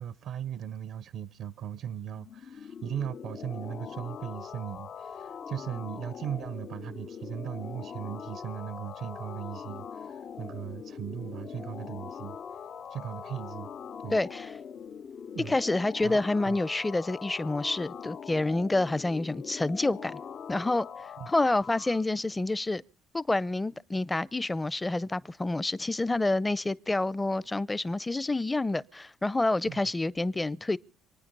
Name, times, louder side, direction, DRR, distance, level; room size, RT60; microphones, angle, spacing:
voice 1, 0.0-13.7 14.0-14.2 15.3-15.6 16.0-16.2 16.4-16.6 21.2-21.3 29.7-29.8, right 9 dB, 65° right, 0.7 m, -38 dB
sound 1, 2.1-22.0, left 7 dB, 50° left, 0.7 m, -42 dB
voice 2, 14.1-14.5 15.5-20.2 20.5-20.9 21.3-22.8 23.1-30.8, left 2 dB, 15° left, 0.7 m, -28 dB
26.5 x 9.7 x 5.4 m
supercardioid pair, 85°, 0 cm